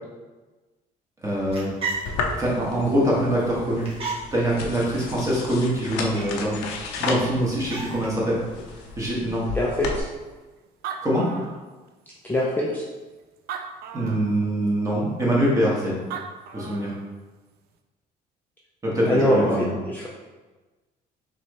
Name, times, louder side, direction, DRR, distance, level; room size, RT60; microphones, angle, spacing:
voice 1, 1.2-1.7 2.4-3.9 4.3-6.6 7.0-8.4 9.0-9.5 11.0-11.3 13.9-16.0 16.5-16.9 18.8-19.8, equal, 20° right, -5 dB, 1.5 m, -23 dB
sound 1, 1.2-9.0, right 3 dB, 35° right, 1.3 m, -38 dB
sound 2, 2.1-10.0, left 4 dB, 90° left, 0.6 m, -34 dB
voice 2, 9.5-10.0 12.2-12.8 19.1-20.1, left 1 dB, 10° left, -4 dB, 0.5 m, -23 dB
Animal, 10.4-10.5 10.7-12.1 12.7-12.8 13.4-14.4 15.8-15.9 16.1-17.1, right 7 dB, 70° right, 0.4 m, -36 dB
4.4 x 3.1 x 3.0 m, 1.2 s
cardioid pair, 110°, 17 cm